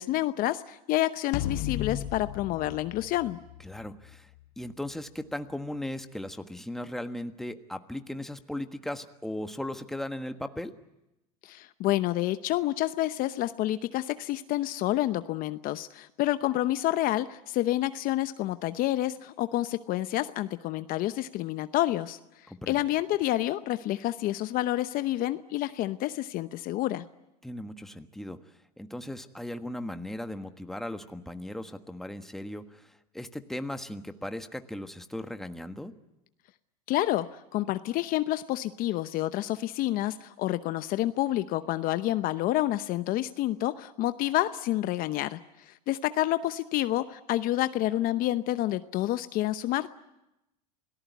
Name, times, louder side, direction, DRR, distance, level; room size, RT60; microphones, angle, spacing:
voice 1, 0.0-3.4 11.4-22.2 22.7-27.0 36.9-49.9, left 15 dB, 45° left, 12 dB, 0.8 m, -29 dB
sound 1, 1.3-3.9, left 12 dB, 65° left, 2.3 m, -34 dB
voice 2, 3.6-4.3 4.6-10.7 22.5-22.8 27.4-28.4 28.8-35.9, left 1 dB, ahead, 7 dB, 1.4 m, -37 dB
27.5 x 18.0 x 9.4 m, 0.93 s
hypercardioid pair, 110°, 20 cm